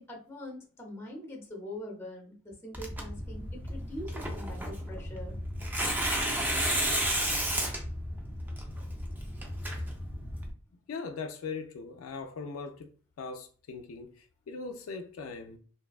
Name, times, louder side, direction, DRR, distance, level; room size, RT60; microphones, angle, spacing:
voice 1, 0.0-5.4, left 1 dB, 10° left, 0.7 m, -43 dB
Tearing, 2.7-10.5, right 1 dB, 10° right, 0.3 m, -33 dB
voice 2, 10.9-12.9 13.2-15.6, left 4 dB, 70° left, 0.3 m, -40 dB
2.6 x 2.2 x 2.3 m
head